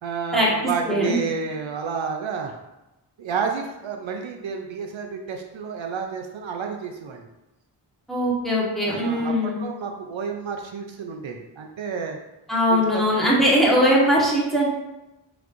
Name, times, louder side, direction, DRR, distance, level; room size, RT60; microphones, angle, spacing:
voice 1, 0.0-2.6 3.2-7.3 8.8-12.2 12.7-13.3, right 5 dB, 80° right, 3 dB, 0.5 m, -30 dB
voice 2, 0.8-1.2 8.1-9.6 12.5-14.7, equal, ahead, -5 dB, 1.4 m, -20 dB
5.2 x 3.1 x 2.5 m, 0.97 s
wide cardioid pair, 40°, 45 cm